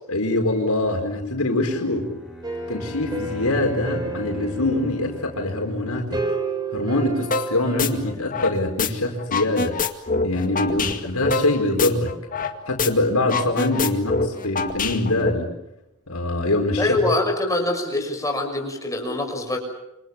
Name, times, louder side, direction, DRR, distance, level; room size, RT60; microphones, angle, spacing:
voice 1, 0.1-2.1 2.7-6.2 6.7-9.8 10.2-12.1 12.7-15.5 16.1-17.1, left 2 dB, 90° left, 2 dB, 4.8 m, -23 dB
Bowed string instrument, 1.7-6.5, right 1 dB, 5° right, 7.0 m, -40 dB
sound 1, 2.4-8.1, right 3 dB, 20° right, 5.1 m, -32 dB
sound 2, 7.3-7.5 7.8-8.9 9.2-12.5 12.8-12.9 13.2-15.3, left 4 dB, 40° left, 2.1 m, -25 dB
voice 2, 16.8-19.6, left 2 dB, 15° left, 3 dB, 6.4 m, -24 dB
28.0 x 26.0 x 7.4 m, 0.89 s
head